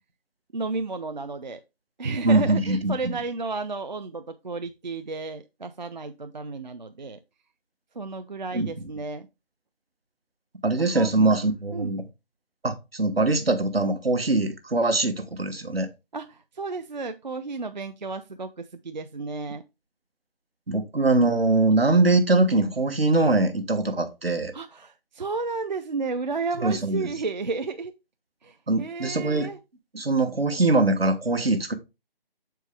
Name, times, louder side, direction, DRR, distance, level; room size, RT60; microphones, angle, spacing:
voice 1, 0.5-1.6 2.0-7.2 8.0-9.3 10.8-11.1 11.7-11.9 16.1-19.6 24.5-27.9 28.4-29.6, right 4 dB, 50° right, 0.4 m, -32 dB
voice 2, 2.2-3.2 8.5-8.9 10.6-12.0 12.6-15.9 20.7-24.5 26.6-27.1 28.7-29.5 29.9-31.7, right 2 dB, 75° right, 1.2 m, -22 dB
6.8 x 4.6 x 3.3 m
figure-of-eight pair, 155°, 30 cm